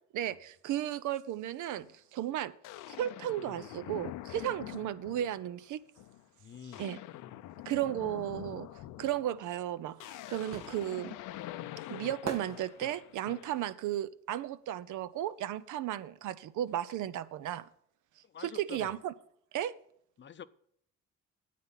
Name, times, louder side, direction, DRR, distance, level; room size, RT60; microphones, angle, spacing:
voice 1, 0.1-2.5 2.9-5.8 6.8-7.0 7.7-8.7 9.0-11.2 11.9-17.6 18.4-19.1 19.5-19.8, right 12 dB, 80° right, 0.6 m, -35 dB
sound 1, 1.8-1.9 2.6-5.5 6.0-6.2 6.5-13.7, left 14 dB, 90° left, 0.6 m, -45 dB
voice 2, 6.4-6.9 18.2-19.0 20.2-20.4, left 8 dB, 40° left, 0.6 m, -47 dB
sound 2, 9.6-15.5 15.8-17.4 17.6-17.7, right 5 dB, 60° right, 1.4 m, -45 dB
9.5 x 8.5 x 5.6 m
cardioid pair, 90°, 30 cm